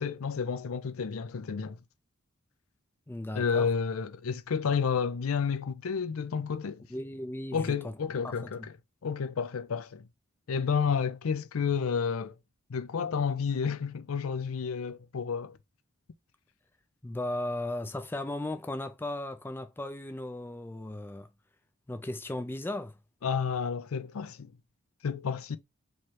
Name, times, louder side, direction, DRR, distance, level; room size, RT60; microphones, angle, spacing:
voice 1, 0.0-1.8 3.3-6.8 7.5-8.6 9.0-10.1 10.5-12.3 12.7-15.6 23.2-24.5 25.0-25.6, left 6 dB, 75° left, 0.5 m, -30 dB
voice 2, 3.1-3.7 6.9-7.9 8.2-8.7 17.0-21.3 21.9-22.9, left 1 dB, 10° left, 0.4 m, -36 dB
3.1 x 3.0 x 4.5 m
head